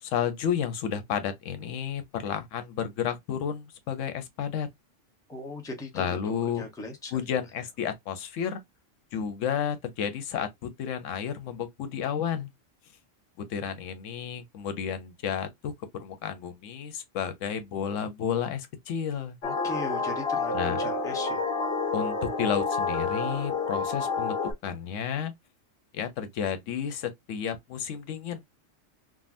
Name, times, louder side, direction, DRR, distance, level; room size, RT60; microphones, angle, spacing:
voice 1, 0.0-4.7 5.9-6.7 7.1-8.6 9.1-12.5 13.4-19.4 20.5-20.8 21.9-25.3 25.9-28.4, left 8 dB, 85° left, 1.0 m, -32 dB
voice 2, 5.3-6.0 6.6-7.1 19.4-21.5, left 2 dB, 5° left, 0.6 m, -38 dB
sound 1, 19.4-24.5, left 4 dB, 60° left, 1.0 m, -29 dB
3.6 x 2.1 x 2.5 m
omnidirectional pair, 1.3 m